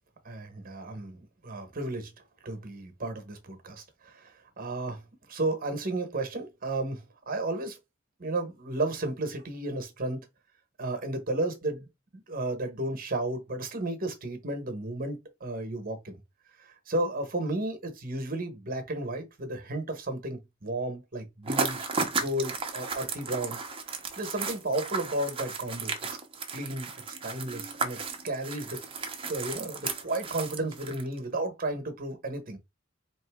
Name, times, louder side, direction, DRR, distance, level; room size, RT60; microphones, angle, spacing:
voice 1, 0.2-2.1 2.4-4.3 4.6-5.0 5.3-7.8 8.2-10.2 10.8-11.9 12.1-16.1 16.9-23.6 24.2-25.9 26.5-28.8 29.3-32.6, right 2 dB, 45° right, 1.1 m, -33 dB
sound 1, 21.4-31.2, right 4 dB, 25° right, 0.8 m, -34 dB
4.2 x 3.0 x 3.5 m
head